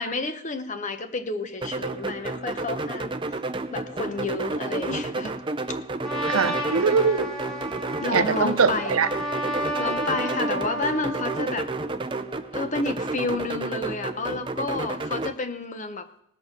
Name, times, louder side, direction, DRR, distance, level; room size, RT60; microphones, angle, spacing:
voice 1, 0.0-3.1 3.7-5.4 8.0-9.1 9.8-11.7 12.5-16.1, left 3 dB, 35° left, 9 dB, 0.9 m, -30 dB
sound 1, 1.6-15.3, right 2 dB, 25° right, 0.5 m, -31 dB
Trumpet, 6.0-11.5, equal, ahead, 1.9 m, -32 dB
voice 2, 6.3-7.3 8.1-9.1, right 5 dB, 85° right, 13 dB, 0.7 m, -22 dB
19.0 x 6.4 x 5.9 m, 0.74 s
head